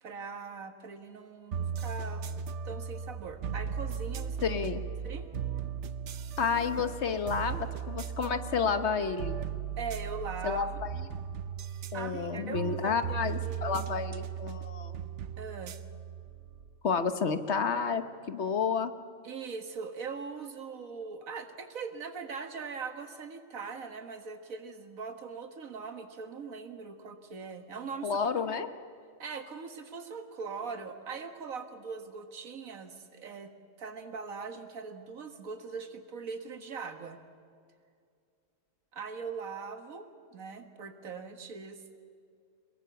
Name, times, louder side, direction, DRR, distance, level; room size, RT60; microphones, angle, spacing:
voice 1, 0.0-2.2 2.6-4.6 5.0-5.3 9.8-10.8 11.9-13.2 13.4-14.1 15.4-15.8 19.2-28.5 29.2-33.5 33.8-37.2 38.9-41.9, right 5 dB, 90° right, 8 dB, 1.9 m, -41 dB
sound 1, 1.5-16.8, right 7 dB, 65° right, 1.1 m, -37 dB
voice 2, 4.4-4.8 6.4-9.4 10.4-10.9 11.9-14.9 16.8-18.9 28.0-28.7, left 6 dB, 55° left, 10 dB, 1.3 m, -30 dB
23.0 x 22.0 x 7.0 m, 2.3 s
omnidirectional pair, 1.4 m